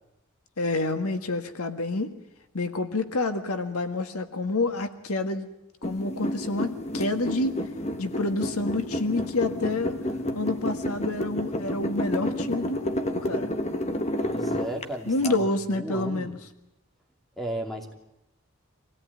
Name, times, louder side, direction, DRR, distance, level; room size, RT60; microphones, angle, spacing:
voice 1, 0.6-2.1 2.5-5.5 5.8-7.6 8.0-10.0 10.3-13.6 15.1-16.4, left 2 dB, 80° left, 7 dB, 1.7 m, -28 dB
sound 1, 5.8-15.3, left 1 dB, 30° left, 1.4 m, -30 dB
voice 2, 14.2-16.4 17.4-17.9, right 1 dB, ahead, 1 dB, 2.7 m, -35 dB
24.5 x 17.5 x 9.6 m, 0.86 s
head